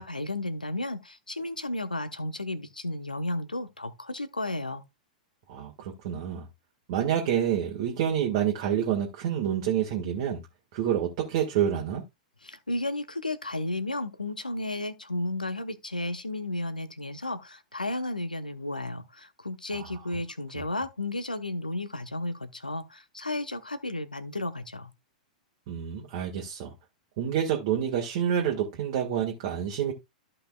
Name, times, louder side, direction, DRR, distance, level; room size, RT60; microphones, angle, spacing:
voice 1, 0.0-4.8 12.4-24.9, left 2 dB, 85° left, 1.0 m, -33 dB
voice 2, 5.5-6.5 6.9-10.4 10.7-12.0 20.6-20.7 25.7-26.7 27.2-29.9, right 9 dB, 45° right, 1.8 m, -28 dB
14.0 x 5.5 x 2.3 m
figure-of-eight pair, 100°, 4 cm